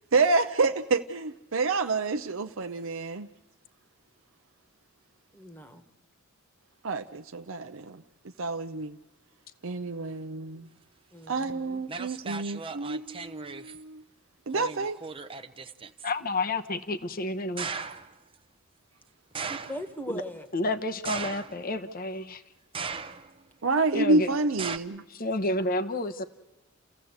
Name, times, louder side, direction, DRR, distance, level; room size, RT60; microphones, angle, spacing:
voice 1, 0.1-3.3 6.8-8.0 8.4-9.0 9.6-10.7 11.3-14.0 14.5-15.0 23.6-25.0, right 3 dB, 65° right, 8 dB, 0.7 m, -28 dB
voice 2, 5.3-5.8 11.1-11.8 19.5-20.5, equal, 10° left, 8 dB, 1.4 m, -39 dB
sound 1, 11.4-11.5 11.9-13.8 14.5-16.1 17.6-18.1 19.4-19.9 21.1-21.8 22.7-23.4 24.6-24.8, right 5 dB, 25° right, 0.8 m, -37 dB
voice 3, 16.0-17.7 20.1-20.2 20.5-22.4 23.9-24.3 25.1-26.2, left 2 dB, 45° left, 9 dB, 1.0 m, -30 dB
29.5 x 15.5 x 8.0 m, 1.1 s
head